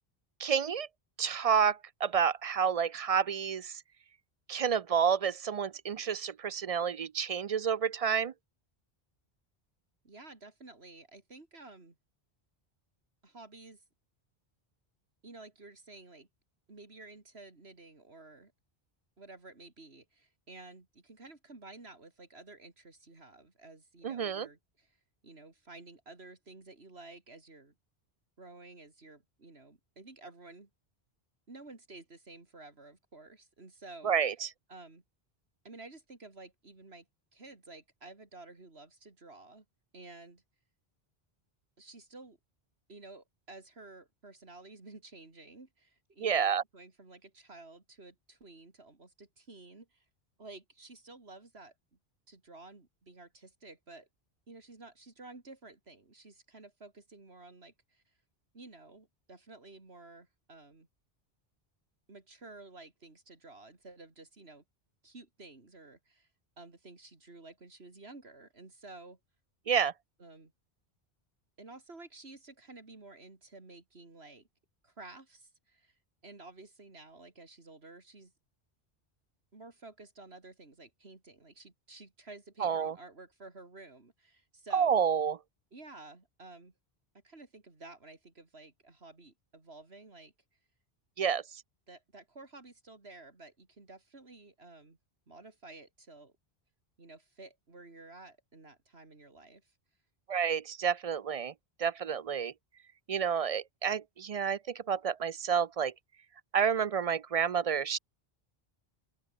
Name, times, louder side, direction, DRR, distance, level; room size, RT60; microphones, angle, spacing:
voice 1, 0.4-0.9 1.2-3.8 4.5-8.3 24.0-24.5 34.0-34.5 46.2-46.6 69.7-69.9 82.6-82.9 84.7-85.3 91.2-91.4 100.3-101.5 101.8-102.5 103.1-105.9 106.5-108.0, right 7 dB, 50° right, 0.4 m, -29 dB
voice 2, 10.0-11.9 13.2-13.8 15.2-16.3 16.7-18.5 19.2-25.0 25.2-27.7 28.4-30.7 31.5-34.1 34.7-35.0 35.6-37.0 37.3-39.6 39.9-40.4 41.8-42.4 42.9-50.1 50.4-51.7 52.3-54.1 54.5-58.1 58.5-60.9 62.1-64.6 65.0-66.3 66.6-69.2 70.2-70.5 71.6-74.5 74.8-78.3 79.5-85.0 85.7-86.7 87.2-90.3 91.9-95.0 95.3-96.3 97.0-99.8, right 2 dB, 80° right, 3.5 m, -52 dB
open air
omnidirectional pair, 1.0 m